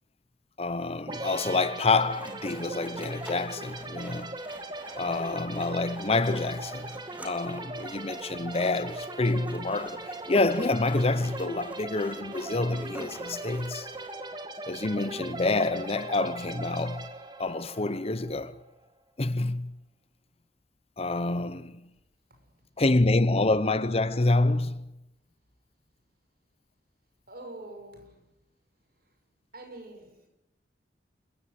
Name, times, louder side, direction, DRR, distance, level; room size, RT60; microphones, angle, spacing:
voice 1, 0.6-4.4 4.9-7.0 7.2-13.9 14.7-17.1 17.4-18.5 19.2-19.7 21.0-21.8 22.8-24.8, left 2 dB, 35° left, 0.8 m, -27 dB
sound 1, 1.1-18.7, right 2 dB, 25° right, 2.2 m, -39 dB
Sawing, 1.7-14.2, equal, 10° right, 3.7 m, -49 dB
voice 2, 27.3-28.3 29.5-30.3, right 2 dB, 55° right, 6.6 m, -45 dB
29.0 x 15.5 x 10.0 m
head